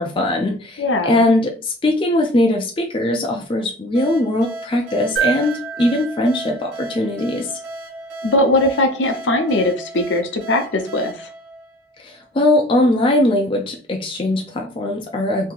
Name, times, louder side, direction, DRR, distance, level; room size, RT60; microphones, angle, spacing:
voice 1, 0.0-7.5 12.0-15.5, left 1 dB, 25° left, 2 dB, 0.4 m, -20 dB
voice 2, 0.8-1.2 8.2-11.3, left 1 dB, 70° left, 4 dB, 0.7 m, -19 dB
sound 1, 3.9-12.4, right 2 dB, 85° right, 1.2 m, -36 dB
sound 2, 5.2-7.5 9.5-9.6, right 10 dB, 65° right, 0.9 m, -28 dB
2.8 x 2.7 x 3.7 m, 0.38 s
head